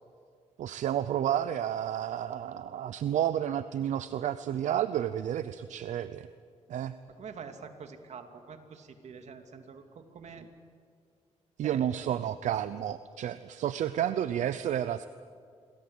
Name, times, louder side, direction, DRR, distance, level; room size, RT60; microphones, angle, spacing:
voice 1, 0.6-6.3 6.7-6.9 11.6-15.1, right 10 dB, 90° right, 13 dB, 0.7 m, -31 dB
voice 2, 7.1-10.4 11.6-11.8, right 6 dB, 70° right, 6 dB, 2.7 m, -46 dB
28.0 x 23.0 x 8.1 m, 2.2 s
cardioid pair, 85°, 12 cm